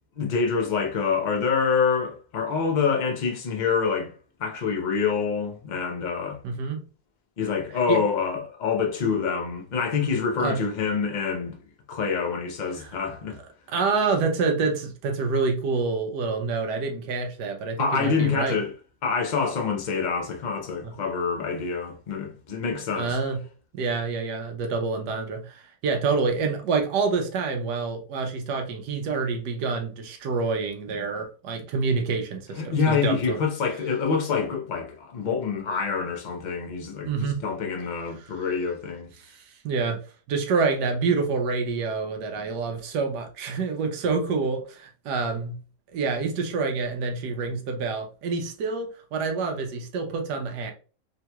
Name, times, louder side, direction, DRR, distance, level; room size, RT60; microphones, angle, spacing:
voice 1, 0.2-4.1 4.4-6.4 7.4-11.6 11.9-13.4 17.8-18.7 19.0-23.2 32.5-39.1, left 5 dB, 55° left, 0.5 m, -26 dB
voice 2, 6.4-6.8 7.9-8.0 10.4-10.6 12.8-12.9 13.7-18.6 22.7-23.4 23.7-32.6 32.9-33.4 37.0-37.4 39.2-40.0 40.3-45.6 45.9-50.7, right 4 dB, 80° right, 1.3 m, -27 dB
3.7 x 2.9 x 2.2 m
omnidirectional pair, 1.8 m